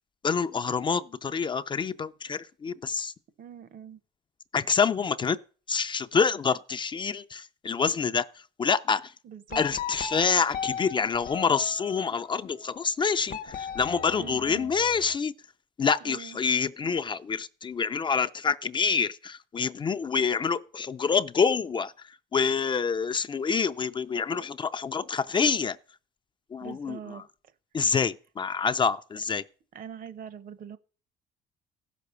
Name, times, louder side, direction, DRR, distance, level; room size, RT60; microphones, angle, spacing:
voice 1, 0.2-3.1 4.5-5.4 5.7-9.1 9.6-15.3 15.8-25.8 26.5-27.2 27.7-29.4, left 5 dB, 30° left, 0.4 m, -27 dB
voice 2, 3.4-4.0 9.2-9.6 14.2-14.7 16.0-16.4 26.6-27.2 29.7-30.8, right 8 dB, 55° right, 0.9 m, -42 dB
sound 1, 9.5-12.2 13.3-15.0, left 8 dB, 55° left, 1.0 m, -37 dB
15.0 x 6.1 x 6.7 m
cardioid pair, 110°, 17 cm